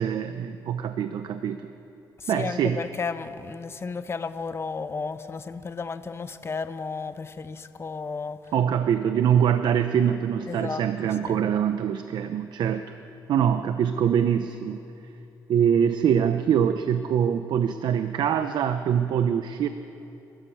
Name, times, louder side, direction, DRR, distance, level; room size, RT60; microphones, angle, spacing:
voice 1, 0.0-1.7 2.3-2.8 8.5-12.9 13.3-14.8 15.5-19.7, right 8 dB, 70° right, 9 dB, 0.8 m, -24 dB
voice 2, 2.2-8.5 10.5-10.8 11.2-11.4, left 4 dB, 35° left, 10 dB, 1.1 m, -33 dB
28.5 x 13.0 x 7.3 m, 2.9 s
cardioid pair, 95°, 8 cm